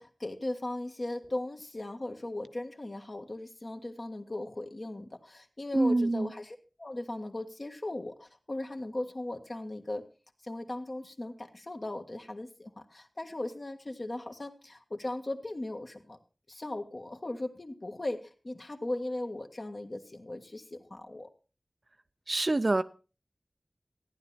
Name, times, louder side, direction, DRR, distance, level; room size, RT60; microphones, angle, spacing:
voice 1, 0.0-10.0 10.4-16.2 16.5-21.3, left 1 dB, 50° left, 4 dB, 1.7 m, -38 dB
voice 2, 5.7-6.3 22.3-22.8, right 2 dB, 50° right, 11 dB, 0.6 m, -26 dB
14.5 x 10.0 x 4.3 m, 0.33 s
wide cardioid pair, 50°, 0 cm